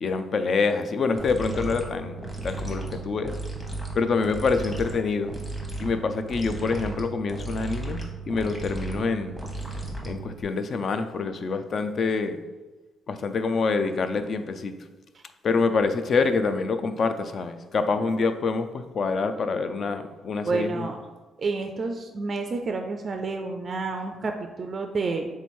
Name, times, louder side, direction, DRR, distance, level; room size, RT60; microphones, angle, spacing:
voice 1, 0.0-3.3 4.0-5.3 5.8-9.4 10.0-12.4 13.1-14.7 15.4-20.9, left 4 dB, 50° left, 9 dB, 0.3 m, -26 dB
sound 1, 1.2-10.4, right 2 dB, 15° left, 1.0 m, -35 dB
voice 2, 20.5-21.0 21.4-25.3, right 3 dB, 45° right, 4 dB, 0.3 m, -29 dB
3.6 x 3.0 x 4.2 m, 1.2 s
cardioid pair, 90°, 0 cm